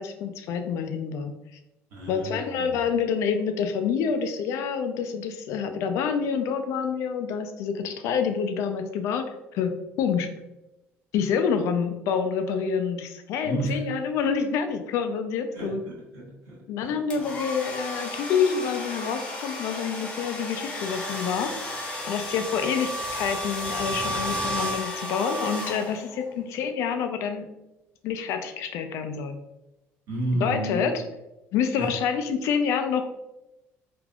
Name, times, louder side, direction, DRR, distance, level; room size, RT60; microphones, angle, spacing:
voice 1, 0.0-1.3 2.1-10.3 11.1-15.8 16.7-21.5 22.1-27.5 28.0-29.4 30.4-30.9 31.5-33.0, left 6 dB, 70° left, 7 dB, 0.3 m, -27 dB
voice 2, 1.9-2.9 13.4-13.9 15.5-17.2 30.1-30.9 31.7-31.9, right 1 dB, 65° right, -4 dB, 1.4 m, -32 dB
sound 1, 17.1-26.2, equal, 20° left, 0.6 m, -33 dB
3.3 x 2.5 x 2.3 m, 0.96 s
cardioid pair, 140°, 5 cm